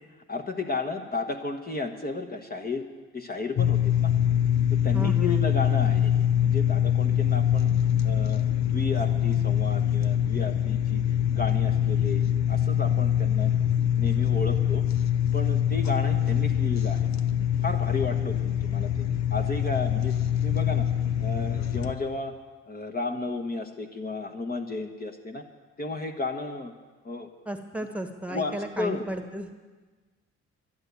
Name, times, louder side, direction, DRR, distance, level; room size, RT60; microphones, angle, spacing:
voice 1, 0.3-2.8 3.1-4.1 4.7-6.1 6.4-7.7 8.0-11.0 11.3-13.5 13.9-14.8 15.3-17.1 17.6-19.0 19.3-20.1 20.4-20.9 21.2-22.3 22.7-25.4 25.8-26.7 27.0-27.3 28.3-29.1, left 3 dB, 30° left, 4 dB, 1.3 m, -33 dB
sound 1, 3.6-21.9, left 10 dB, 65° left, 0.9 m, -24 dB
voice 2, 4.9-5.4 27.4-29.5, right 1 dB, 5° right, 6 dB, 1.4 m, -34 dB
11.5 x 11.5 x 8.3 m, 1.3 s
cardioid pair, 90°, 30 cm